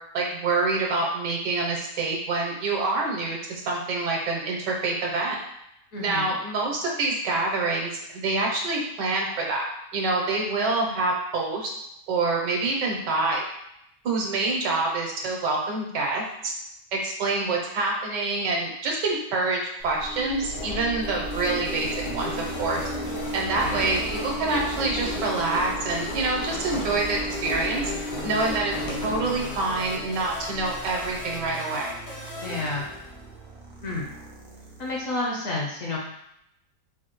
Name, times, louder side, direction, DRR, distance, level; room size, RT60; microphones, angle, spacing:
voice 1, 0.1-5.4 6.0-11.7 12.1-13.4 14.0-16.2 16.9-22.3 22.6-22.9 23.3-27.9 28.2-28.7 29.0-31.9, right 3 dB, 75° right, -1 dB, 1.5 m, -26 dB
voice 2, 5.9-6.3 23.4-23.9 32.4-32.9 33.8-34.1 34.8-36.0, left 2 dB, 60° left, -3 dB, 1.0 m, -30 dB
Engine, 19.8-31.5, equal, 75° left, 1.5 m, -34 dB
sound 1, 21.3-33.5, left 1 dB, 30° left, 0.6 m, -39 dB
sound 2, 21.5-35.1, right 2 dB, 55° right, 0.6 m, -43 dB
4.9 x 2.7 x 3.0 m, 0.79 s
omnidirectional pair, 1.9 m